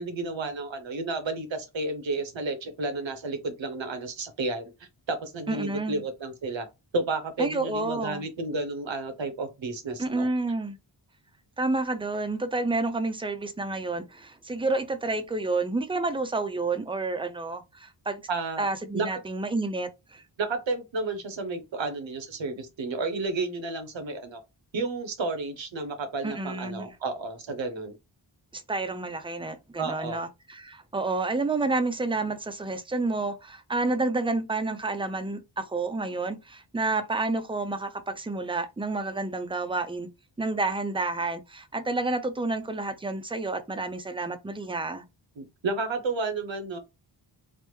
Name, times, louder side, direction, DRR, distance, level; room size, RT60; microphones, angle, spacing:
voice 1, 0.0-6.7 6.9-10.3 18.3-18.7 18.9-19.1 20.4-24.4 24.7-27.9 29.8-30.2 45.4-46.8, right 3 dB, 75° right, 0.9 m, -32 dB
voice 2, 5.5-6.0 7.4-8.2 10.0-10.8 11.6-18.2 18.6-20.2 26.2-26.9 28.5-40.1 40.4-45.0, right 3 dB, 10° right, 0.4 m, -29 dB
3.3 x 2.0 x 3.1 m
wide cardioid pair, 75°, 46 cm